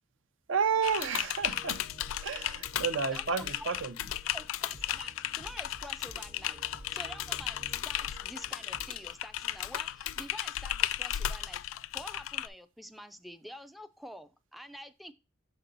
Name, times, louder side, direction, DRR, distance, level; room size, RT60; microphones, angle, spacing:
voice 1, 0.5-1.8 2.2-3.9, right 6 dB, 70° right, 0.6 m, -31 dB
Typing, 0.8-12.5, left 12 dB, 85° left, 0.3 m, -35 dB
sound 1, 1.4-9.2, right 1 dB, 40° right, 0.7 m, -52 dB
voice 2, 3.1-3.7 4.3-6.6 6.9-11.6 11.9-15.1, equal, ahead, 0.3 m, -47 dB
6.6 x 4.3 x 3.9 m
head